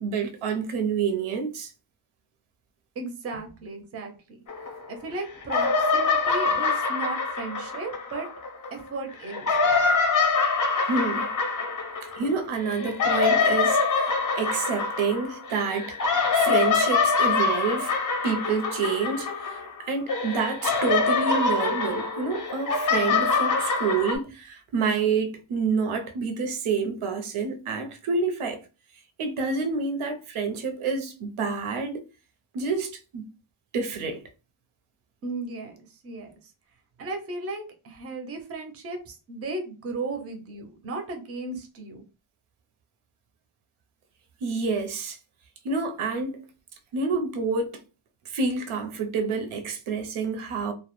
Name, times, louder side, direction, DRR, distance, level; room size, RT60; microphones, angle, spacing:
voice 1, 0.0-1.7 10.9-11.3 12.2-16.0 16.3-17.9 18.2-28.6 29.2-32.0 32.5-33.3 33.7-34.2 44.4-45.2 45.6-46.4 46.9-47.8 48.3-50.7, right 5 dB, 85° right, 0.6 m, -28 dB
voice 2, 3.0-4.4 4.9-8.3 8.7-9.6 35.2-36.5 37.0-42.0, right 3 dB, 30° right, 0.4 m, -35 dB
sound 1, 4.5-5.1 5.4-8.7 9.2-19.8 20.1-24.2, left 4 dB, 40° left, 0.5 m, -25 dB
2.2 x 2.0 x 2.9 m
wide cardioid pair, 170°, 48 cm